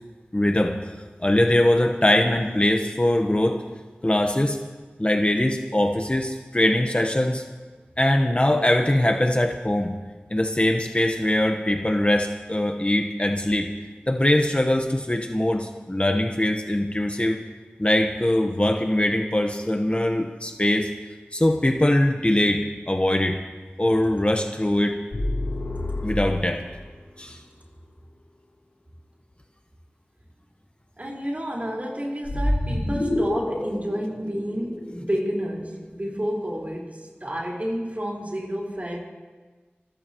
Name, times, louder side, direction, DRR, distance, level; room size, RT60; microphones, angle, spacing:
voice 1, 0.3-0.8 1.2-3.6 4.0-4.6 5.0-7.4 8.0-9.9 10.3-13.7 14.1-17.4 17.8-20.9 21.3-23.4 23.8-25.0 26.0-26.6 27.2-27.4, left 1 dB, 30° left, 3 dB, 1.2 m, -22 dB
sound 1, 25.1-26.7 32.3-35.3, left 1 dB, 90° left, 4.0 m, -27 dB
voice 2, 31.0-39.0, equal, 40° right, -2 dB, 4.6 m, -30 dB
27.5 x 14.5 x 3.1 m, 1.4 s
wide cardioid pair, 40°, 4 cm